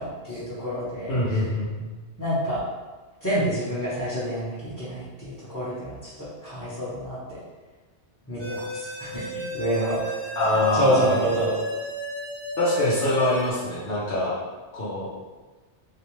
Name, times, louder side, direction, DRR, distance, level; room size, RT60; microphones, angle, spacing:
voice 1, 0.0-1.5 2.2-2.6 3.2-7.4 8.3-10.0 10.4-11.6, equal, 15° left, -13 dB, 0.9 m, -28 dB
voice 2, 1.1-1.9 10.4-11.1 12.6-14.4 14.7-15.1, left 1 dB, 55° left, -10 dB, 0.9 m, -24 dB
sound 1, 8.4-13.5, right 3 dB, 70° right, 1.2 m, -33 dB
3.1 x 2.9 x 3.1 m, 1.3 s
omnidirectional pair, 1.2 m